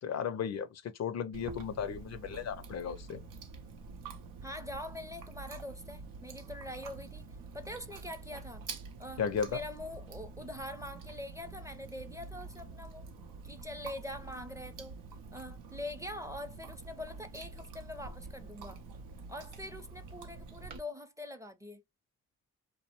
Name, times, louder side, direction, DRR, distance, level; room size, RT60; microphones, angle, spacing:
voice 1, 0.0-3.2 9.2-9.5, left 7 dB, 55° left, 0.4 m, -35 dB
Chewing mastication, 1.3-20.8, right 4 dB, 90° right, 0.5 m, -47 dB
voice 2, 4.4-8.6 9.0-9.2 9.5-13.1 13.4-15.0 15.3-18.8 19.3-21.8, left 1 dB, 10° right, 0.5 m, -44 dB
2.5 x 2.0 x 2.8 m
supercardioid pair, 50°, 32 cm